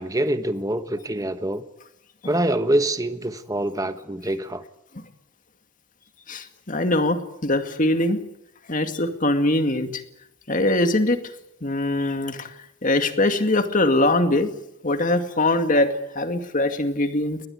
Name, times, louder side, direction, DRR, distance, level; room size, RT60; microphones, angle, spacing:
voice 1, 0.0-1.6 2.2-4.6, right 1 dB, 15° right, 10 dB, 1.1 m, -25 dB
voice 2, 6.3-8.2 8.7-10.0 10.5-11.2 11.6-12.5 12.8-14.5 14.8-17.4, left 2 dB, 40° left, 7 dB, 2.2 m, -22 dB
21.5 x 19.5 x 9.4 m, 0.86 s
head